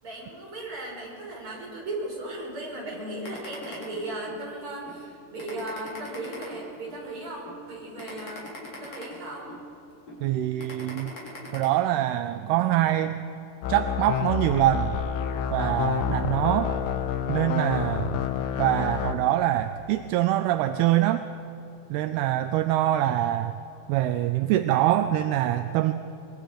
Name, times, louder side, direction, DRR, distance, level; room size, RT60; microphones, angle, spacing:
voice 1, 0.0-8.5 8.8-9.5, right 2 dB, 30° right, -3 dB, 5.7 m, -36 dB
sound 1, 3.2-4.4 4.9-5.0 5.4-7.0 7.5-7.6 8.0-9.6 10.1-10.2 10.6-11.6, left 3 dB, 35° left, 4.9 m, -41 dB
voice 2, 10.2-11.1 11.5-13.2 13.7-15.0 15.5-16.8 17.3-18.2 18.6-21.2 21.9-23.5 23.9-25.9, right 13 dB, 80° right, 9 dB, 2.4 m, -24 dB
sound 2, 13.6-19.1, left 8 dB, 75° left, 2.1 m, -28 dB
25.5 x 22.0 x 5.1 m, 2.9 s
omnidirectional pair, 4.9 m